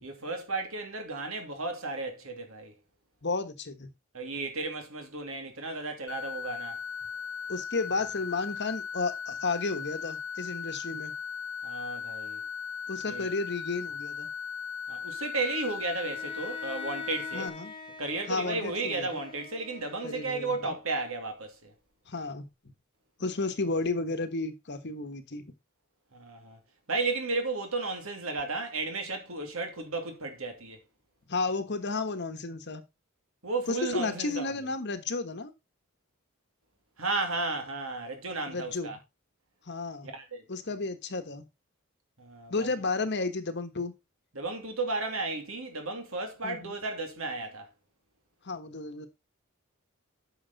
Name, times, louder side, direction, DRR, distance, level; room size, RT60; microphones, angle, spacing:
voice 1, 0.0-2.7 4.1-6.8 11.6-12.4 13.1-13.4 14.9-17.5 18.0-21.7 26.1-26.6 26.9-30.8 33.4-34.5 37.0-39.0 40.0-40.4 42.2-42.8 44.3-47.7, right 3 dB, 70° right, 2.6 m, -34 dB
voice 2, 3.2-3.9 7.5-11.1 12.9-14.3 17.3-17.7 18.3-19.2 20.0-20.8 22.1-22.5 23.2-25.4 31.3-32.8 33.7-35.5 38.5-38.9 39.7-40.1 40.5-41.4 42.5-43.9 46.4-46.7 48.4-49.1, left 3 dB, 50° left, 1.3 m, -32 dB
sound 1, 6.1-17.5, left 7 dB, 75° left, 0.7 m, -38 dB
Bowed string instrument, 16.0-21.0, left 2 dB, 25° left, 1.3 m, -46 dB
9.3 x 6.4 x 4.0 m
head